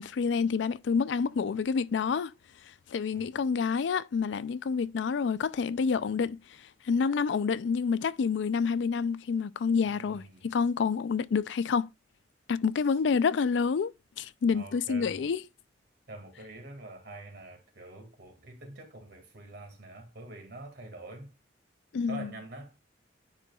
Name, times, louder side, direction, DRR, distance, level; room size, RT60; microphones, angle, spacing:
voice 1, 0.0-2.3 2.9-6.4 6.9-11.9 12.5-13.9 14.2-15.4 21.9-22.3, left 5 dB, 75° left, 0.4 m, -28 dB
voice 2, 9.8-10.5 14.5-15.3 16.1-21.3 22.0-22.8, right 2 dB, 65° right, 2.0 m, -46 dB
9.9 x 4.4 x 2.3 m
head